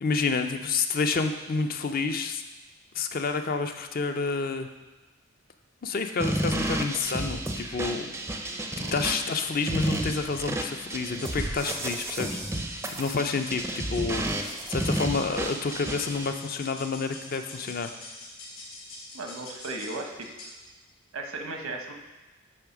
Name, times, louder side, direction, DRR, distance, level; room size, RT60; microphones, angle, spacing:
voice 1, 0.0-2.4 2.9-4.7 5.8-8.2 8.8-17.9, left 4 dB, 40° left, 7 dB, 0.5 m, -29 dB
sound 1, 6.2-16.3, right 1 dB, 10° right, 0.5 m, -32 dB
sound 2, 11.2-20.6, left 2 dB, 80° left, 2.2 m, -45 dB
voice 2, 19.1-20.5 21.1-21.9, right 2 dB, 85° right, 3 dB, 1.0 m, -36 dB
8.6 x 3.4 x 5.9 m, 1.2 s
head